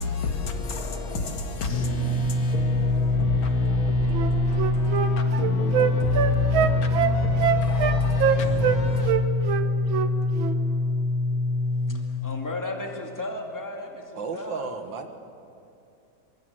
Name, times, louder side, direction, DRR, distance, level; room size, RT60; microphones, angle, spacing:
voice 1, 0.0-9.1, left 4 dB, 90° left, 4 dB, 2.8 m, -30 dB
sound 1, 1.7-11.9, left 2 dB, 65° left, 2.7 m, -24 dB
Wind instrument woodwind instrument, 4.1-8.8 9.0-10.1 10.4-10.6, right 9 dB, 90° right, 1.8 m, -24 dB
voice 2, 11.9-14.7, left 2 dB, 10° left, 1 dB, 2.2 m, -35 dB
voice 3, 14.2-15.1, right 5 dB, 70° right, 6 dB, 2.3 m, -33 dB
23.0 x 23.0 x 7.9 m, 2.7 s
omnidirectional pair, 2.1 m